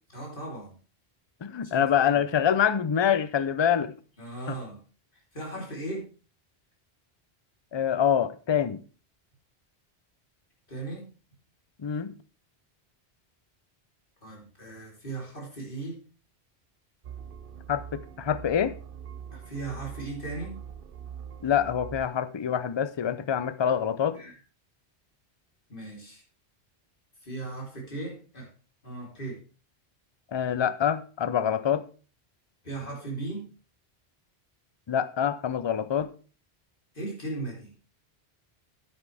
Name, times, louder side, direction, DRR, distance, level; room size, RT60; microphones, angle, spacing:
voice 1, 0.1-0.8 1.6-2.2 4.2-4.8 5.3-6.1 10.7-11.0 14.2-16.0 19.3-20.6 24.1-24.4 25.7-26.2 27.2-28.5 28.8-29.4 32.6-33.4 36.9-37.7, right 2 dB, 50° left, 3.8 m, -37 dB
voice 2, 1.4-3.9 4.5-4.6 7.7-8.8 11.8-12.1 17.7-18.7 21.4-24.2 30.3-31.8 34.9-36.1, left 8 dB, 35° left, 0.5 m, -25 dB
sound 1, 17.0-22.1, right 8 dB, 60° right, 0.8 m, -43 dB
9.9 x 9.7 x 3.4 m
omnidirectional pair, 1.1 m